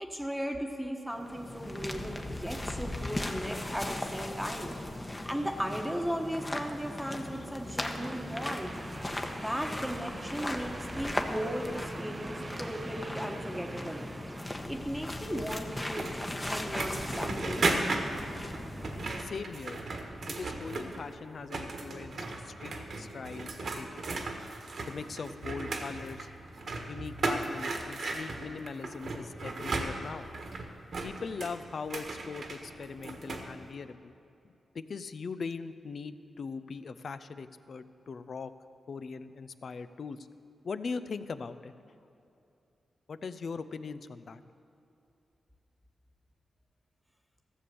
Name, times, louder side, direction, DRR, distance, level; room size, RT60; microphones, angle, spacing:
voice 1, 0.0-4.7 5.2-8.7 9.4-14.0 14.7-17.7, equal, ahead, 2 dB, 1.2 m, -36 dB
sound 1, 1.1-19.4, left 1 dB, 25° left, 1.1 m, -38 dB
sound 2, 7.8-14.5, right 2 dB, 35° right, 0.5 m, -44 dB
sound 3, 15.3-21.1 21.4-33.5, right 3 dB, 65° right, 1.4 m, -36 dB
voice 2, 19.2-19.8 20.3-24.1 24.9-26.3 26.9-30.3 31.0-34.1 34.4-38.5 38.9-40.3 40.6-41.7 43.1-44.4, left 5 dB, 65° left, 12 dB, 0.5 m, -40 dB
14.0 x 7.0 x 6.9 m, 2.7 s
cardioid pair, 55°, 0 cm